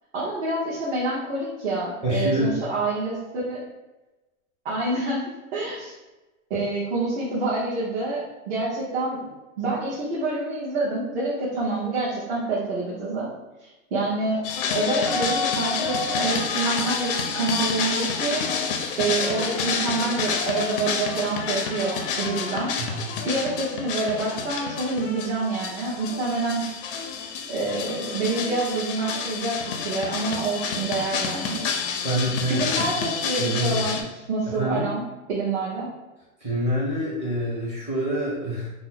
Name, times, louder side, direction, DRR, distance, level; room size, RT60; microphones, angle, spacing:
voice 1, 0.1-3.7 4.6-5.2 5.5-5.9 6.5-13.3 13.6-14.4 14.7-18.4 19.0-22.7 23.2-26.7 27.5-31.6 32.5-35.9, right 3 dB, 55° right, -7 dB, 1.0 m, -27 dB
voice 2, 2.0-2.5 22.8-23.1 32.0-32.9 33.4-33.8 34.5-34.9 36.4-38.7, right 1 dB, 15° right, -6 dB, 0.6 m, -26 dB
sound 1, 14.4-34.0, left 5 dB, 45° left, 0.4 m, -28 dB
2.7 x 2.0 x 3.9 m, 1.1 s
hypercardioid pair, 145°, 40 cm